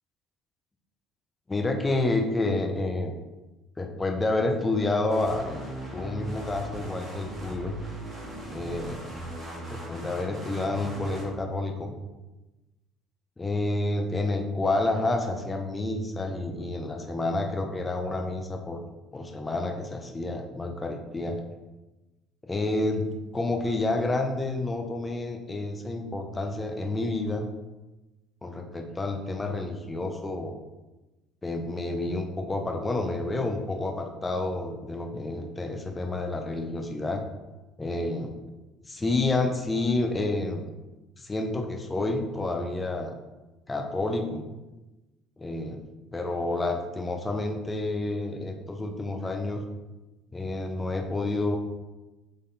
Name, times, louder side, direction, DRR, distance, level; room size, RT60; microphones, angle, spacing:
voice 1, 1.5-3.1 3.8-7.8 8.5-9.2 9.7-11.9 13.4-18.8 19.1-21.4 22.4-27.4 28.4-30.6 31.4-37.2 37.8-38.3 38.9-40.7 41.2-43.1 43.7-44.5 45.4-45.8 46.1-49.6 50.3-51.6, left 2 dB, 20° left, 3 dB, 0.8 m, -29 dB
sound 1, 5.1-11.2, right 1 dB, 25° right, 1.6 m, -38 dB
3.8 x 3.4 x 4.0 m, 1.1 s
hypercardioid pair, 65°, 0 cm